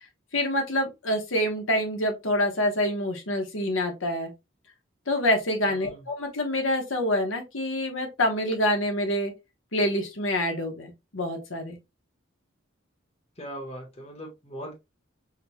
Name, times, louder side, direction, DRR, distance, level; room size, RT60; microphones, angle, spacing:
voice 1, 0.3-4.3 5.1-9.3 9.7-11.8, left 1 dB, 80° left, 1.2 m, -26 dB
voice 2, 5.7-6.1 13.4-14.7, right 1 dB, 30° left, 1.2 m, -40 dB
6.2 x 2.4 x 2.9 m
head